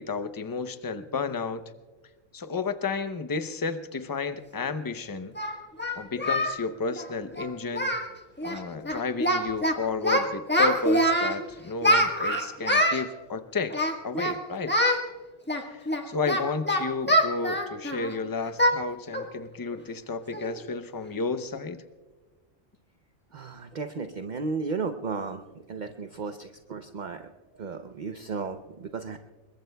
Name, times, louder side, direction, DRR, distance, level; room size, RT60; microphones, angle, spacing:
voice 1, 0.0-1.6 2.3-5.4 5.9-7.9 8.4-14.8 15.6-21.8, left 4 dB, 30° left, 10 dB, 0.4 m, -32 dB
Singing, 4.5-4.6 5.4-6.6 6.8-7.1 7.4-7.5 7.7-8.1 8.4-8.6 8.9-9.7 10.0-11.4 11.8-13.0 13.7-14.4 14.7-15.0 15.5-18.1 18.6-18.8 19.1-19.3 19.7-19.8 20.3-20.6, equal, 10° left, 1.3 m, -24 dB
voice 2, 23.3-25.4 25.7-27.3 27.5-29.2, right 4 dB, 50° right, 7 dB, 0.6 m, -34 dB
28.0 x 22.5 x 2.3 m, 1.3 s
omnidirectional pair, 1.4 m